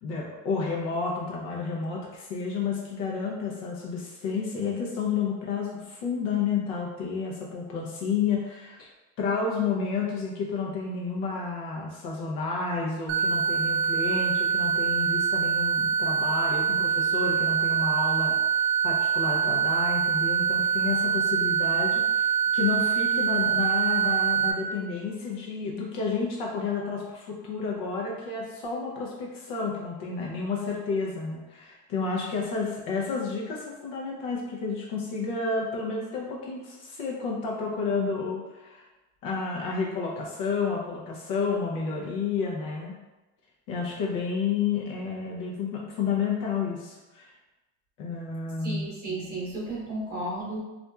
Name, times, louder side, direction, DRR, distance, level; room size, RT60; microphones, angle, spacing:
voice 1, 0.0-8.9 9.2-38.9 39.2-42.9 43.7-47.3 48.0-48.9, left 5 dB, 50° left, -2 dB, 0.6 m, -31 dB
sound 1, 13.1-24.5, right 7 dB, 55° right, 0.5 m, -24 dB
voice 2, 48.6-50.6, right 1 dB, 25° right, -8 dB, 1.1 m, -33 dB
4.1 x 2.5 x 2.3 m, 1.1 s
cardioid pair, 175°, 41 cm